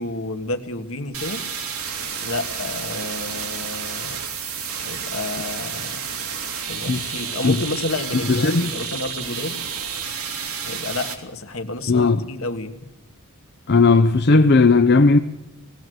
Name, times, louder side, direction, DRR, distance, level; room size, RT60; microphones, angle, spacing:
voice 1, 0.0-1.4 2.2-4.2 4.7-6.0 6.7-9.7 10.6-12.7, left 2 dB, 70° left, 1.7 m, -30 dB
sound 1, 1.1-11.1, right 6 dB, 80° right, 2.7 m, -30 dB
voice 2, 8.3-8.7 11.9-12.2 13.7-15.2, left 3 dB, 50° left, 0.7 m, -15 dB
19.0 x 17.5 x 7.8 m
head